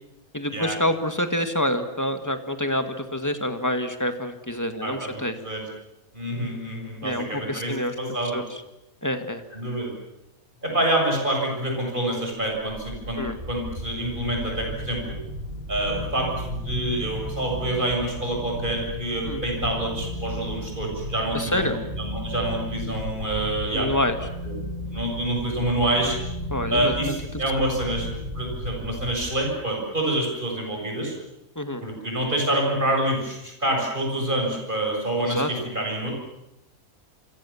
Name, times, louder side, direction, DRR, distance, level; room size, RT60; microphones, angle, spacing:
voice 1, 0.3-5.3 7.0-7.9 8.3-8.4 9.0-9.4 13.2-13.4 19.2-19.4 21.3-21.8 23.7-24.2 26.5-27.7 31.6-31.8 35.2-35.5, left 1 dB, 10° left, 7 dB, 2.0 m, -27 dB
voice 2, 4.8-5.7 6.1-8.4 9.5-9.9 10.6-15.1 15.7-23.9 24.4-24.5 24.9-26.2 26.7-28.1 28.3-31.2 31.8-36.1, right 1 dB, 35° right, 0 dB, 7.7 m, -27 dB
sound 1, 12.5-29.7, equal, 75° right, 6.9 m, -34 dB
27.5 x 25.0 x 7.3 m, 0.92 s
omnidirectional pair, 1.5 m